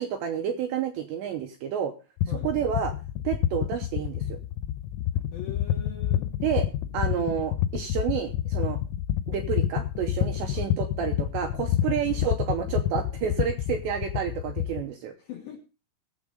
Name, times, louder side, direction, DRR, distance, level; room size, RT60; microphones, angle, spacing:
voice 1, 0.0-1.9 2.4-2.9 3.2-4.4 6.4-6.7 6.9-8.8 9.3-15.1, right 8 dB, 80° right, 5 dB, 2.6 m, -30 dB
sound 1, 2.2-14.8, left 11 dB, 90° left, 3.5 m, -28 dB
voice 2, 5.3-6.3 10.5-10.8 12.1-12.4 15.2-15.6, left 9 dB, 75° left, 1 dB, 2.2 m, -42 dB
19.0 x 7.2 x 3.8 m, 0.31 s
omnidirectional pair, 6.0 m